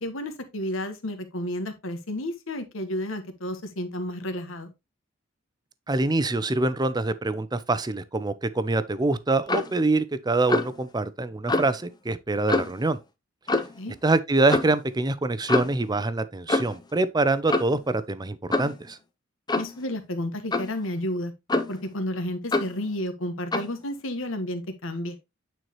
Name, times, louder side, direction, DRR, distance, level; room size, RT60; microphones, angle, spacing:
voice 1, 0.0-4.7 13.8-13.9 19.6-21.3 21.7-25.2, left 1 dB, 75° left, 1.4 m, -31 dB
voice 2, 5.9-13.0 14.0-19.0, right 2 dB, 20° right, 0.6 m, -25 dB
Clock, 9.5-9.8 10.5-10.8 11.5-11.7 12.5-12.8 13.5-13.8 14.5-14.7 15.5-15.8 16.5-16.8 17.5-17.8 18.5-18.8 19.5-19.8 20.5-20.8 21.5-21.9 22.5-22.8 23.5-23.7, left 2 dB, 20° left, 0.7 m, -26 dB
9.0 x 4.5 x 3.1 m
head